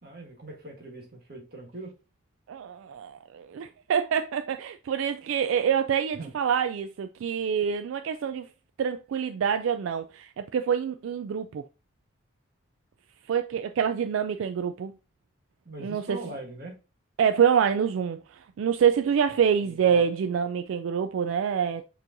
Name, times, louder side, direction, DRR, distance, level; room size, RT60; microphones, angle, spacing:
voice 1, 0.0-1.9 6.1-6.3 15.6-16.8 19.6-20.0, right 2 dB, 50° right, 1.5 m, -41 dB
voice 2, 2.5-8.5 8.8-11.6 13.3-14.9 15.8-16.2 17.2-21.8, right 7 dB, 80° right, 0.3 m, -26 dB
6.7 x 3.1 x 2.5 m
head